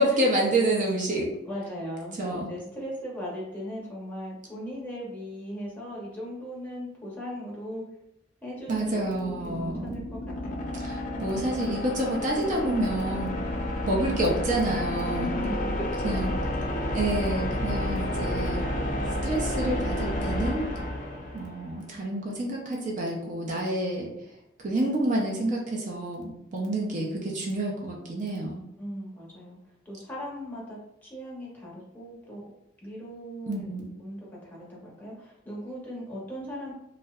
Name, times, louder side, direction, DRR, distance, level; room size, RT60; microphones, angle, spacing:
voice 1, 0.0-1.3 2.2-2.5 8.7-10.0 10.8-13.4 13.9-15.3 16.0-16.3 16.9-18.6 19.2-20.7 21.3-24.1 24.6-28.6 33.5-33.9, right 1 dB, 45° right, -2 dB, 0.4 m, -28 dB
voice 2, 1.5-2.1 2.5-7.8 8.4-10.7 14.9-16.3 28.8-29.6 29.9-32.5 32.8-33.6 34.0-36.7, equal, 10° left, -5 dB, 0.8 m, -38 dB
sound 1, 8.7-21.8, left 1 dB, 45° left, 0.4 m, -31 dB
2.6 x 2.1 x 2.3 m, 0.83 s
head